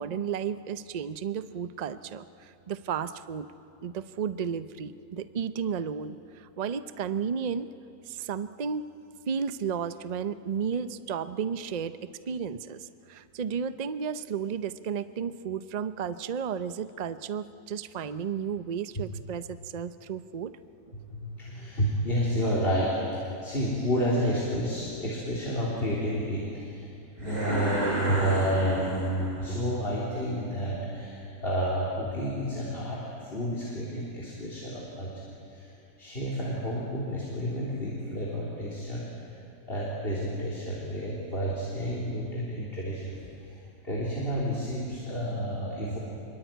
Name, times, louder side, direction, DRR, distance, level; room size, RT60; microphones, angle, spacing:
voice 1, 0.0-3.5 3.8-7.7 8.1-8.8 9.3-12.0 12.3-20.5, right 7 dB, 70° right, 12 dB, 0.4 m, -33 dB
voice 2, 21.0-26.9 27.2-35.1 35.5-35.7 36.0-39.1 39.7-43.6 43.8-46.0, equal, 35° left, -5 dB, 3.9 m, -30 dB
sound 1, 27.2-29.5, equal, 25° right, 6.7 m, -32 dB
25.5 x 23.5 x 9.2 m, 2.7 s
omnidirectional pair, 1.8 m